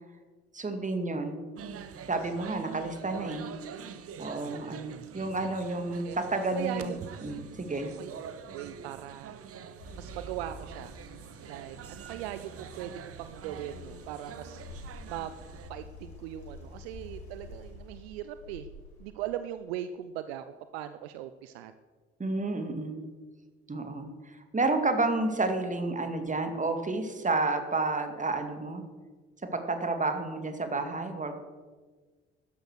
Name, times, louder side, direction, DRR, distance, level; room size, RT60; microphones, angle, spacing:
voice 1, 0.5-1.4 2.1-3.5 4.2-7.9 22.2-23.0 23.7-28.8 29.5-31.4, right 3 dB, 25° right, 7 dB, 2.4 m, -31 dB
sound 1, 1.6-15.7, right 8 dB, 45° right, 1.1 m, -45 dB
voice 2, 6.5-7.0 8.0-8.1 8.5-9.4 10.0-10.9 11.4-14.6 15.1-15.3 15.7-18.7 19.0-20.4 20.7-21.7, right 11 dB, 70° right, 11 dB, 0.6 m, -39 dB
sound 2, 9.8-19.1, left 1 dB, 80° left, 2.8 m, -48 dB
13.0 x 11.0 x 6.5 m, 1.4 s
figure-of-eight pair, 45°, 32 cm